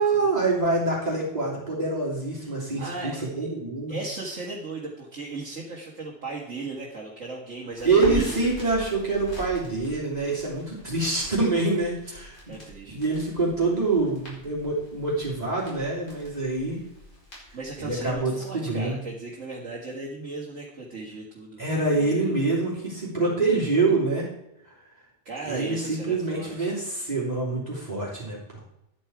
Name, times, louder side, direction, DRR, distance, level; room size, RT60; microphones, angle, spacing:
voice 1, 0.0-3.9 7.8-12.5 12.9-16.8 17.8-19.0 21.6-24.3 25.4-28.4, right 3 dB, 30° right, -6 dB, 3.2 m, -25 dB
voice 2, 2.8-3.5 3.9-8.5 12.5-13.2 17.5-21.6 21.9-22.3 25.3-26.8, right 3 dB, 60° right, -3 dB, 2.1 m, -36 dB
Crackle, 7.7-18.1, left 2 dB, 65° left, 5.0 m, -43 dB
10.5 x 8.8 x 4.7 m, 0.86 s
omnidirectional pair, 1.4 m